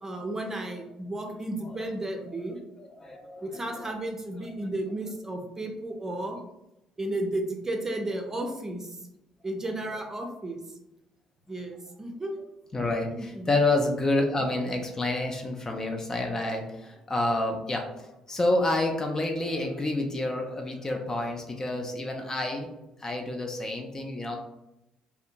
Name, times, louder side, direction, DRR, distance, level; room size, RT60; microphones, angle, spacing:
voice 1, 0.0-2.6 3.4-6.4 7.0-9.0 9.4-10.6 11.5-12.3 13.1-13.5, right 1 dB, 25° right, 2 dB, 0.6 m, -33 dB
voice 2, 2.3-3.9 4.4-4.7 12.7-22.7 23.0-24.4, left 2 dB, 25° left, 2 dB, 0.5 m, -29 dB
2.6 x 2.2 x 2.5 m, 0.90 s
figure-of-eight pair, 50°, 2 cm